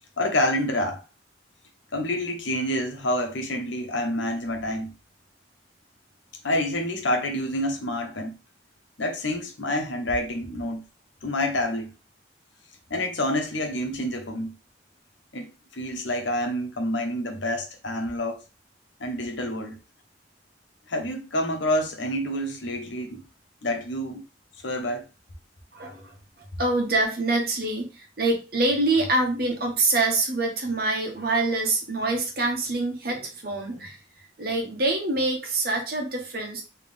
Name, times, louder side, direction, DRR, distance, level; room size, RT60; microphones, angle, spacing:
voice 1, 0.2-1.0 1.9-4.9 6.4-8.4 9.0-10.8 11.2-11.9 12.9-14.5 15.3-18.4 19.0-19.8 20.9-23.3 23.6-24.2 24.6-25.0, left 1 dB, 80° left, 1.0 m, -28 dB
voice 2, 25.7-26.1 26.6-34.0 34.4-36.6, right 2 dB, 50° right, 1.2 m, -25 dB
3.5 x 3.2 x 3.4 m
head